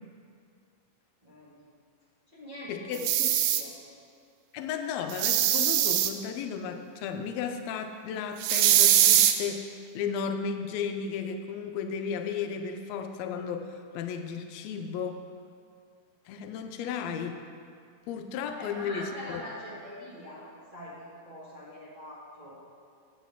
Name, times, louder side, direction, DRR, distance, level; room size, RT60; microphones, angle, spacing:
voice 1, 1.2-1.6 2.3-2.9 3.5-3.7 18.6-22.6, equal, 60° right, -9 dB, 0.4 m, -43 dB
voice 2, 2.7-3.3 4.5-15.2 16.3-17.4 18.1-19.4, left 6 dB, 80° left, 6 dB, 1.6 m, -34 dB
sound 1, 2.9-3.6 5.1-6.1 8.4-9.3, right 11 dB, 85° right, 1.5 m, -22 dB
8.8 x 8.3 x 3.5 m, 2.3 s
omnidirectional pair, 3.5 m